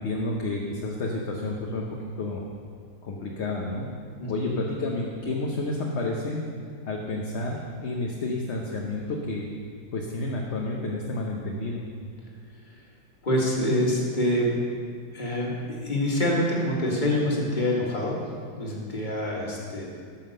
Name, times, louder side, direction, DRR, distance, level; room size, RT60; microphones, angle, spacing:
voice 1, 0.0-1.9 2.2-2.4 3.0-3.9 4.3-6.4 6.9-9.5 9.9-11.8, left 2 dB, 50° left, -1 dB, 1.0 m, -30 dB
voice 2, 4.2-4.6 12.6-12.8 13.2-14.6 15.1-18.2 18.6-19.8, left 1 dB, 25° left, -3 dB, 2.0 m, -26 dB
13.5 x 5.7 x 6.5 m, 2.1 s
omnidirectional pair, 1.8 m